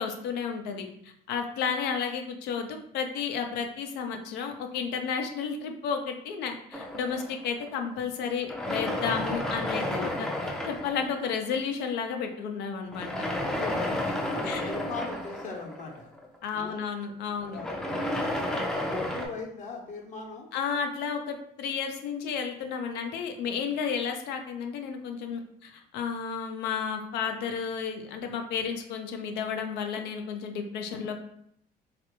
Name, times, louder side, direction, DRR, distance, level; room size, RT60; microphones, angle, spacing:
voice 1, 0.0-13.2 14.4-14.7 16.4-17.6 20.5-31.1, left 6 dB, 85° left, 4 dB, 0.5 m, -32 dB
sound 1, 6.7-7.9 8.4-11.6 12.9-16.4 17.4-19.3, left 1 dB, 5° left, 0.4 m, -32 dB
voice 2, 13.3-16.1 16.5-16.8 17.2-20.5, left 4 dB, 45° left, 1 dB, 0.8 m, -40 dB
3.2 x 2.4 x 3.0 m, 0.71 s
cardioid pair, 110°, 17 cm